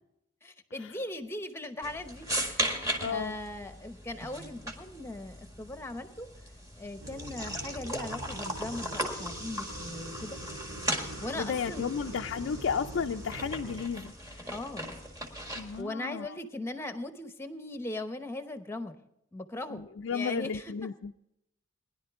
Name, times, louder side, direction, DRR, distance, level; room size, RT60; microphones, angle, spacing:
voice 1, 0.4-6.3 6.8-10.4 11.2-11.9 14.5-14.9 15.8-19.0 19.3-20.9, left 2 dB, 10° left, 0.8 m, -39 dB
sound 1, 1.8-15.8, equal, 15° right, 1.7 m, -38 dB
voice 2, 3.0-3.3 11.4-14.4 15.6-16.4 19.7-21.1, left 6 dB, 65° left, 0.4 m, -33 dB
sound 2, 7.0-13.8, right 1 dB, 80° right, 2.1 m, -44 dB
20.0 x 11.0 x 3.5 m
head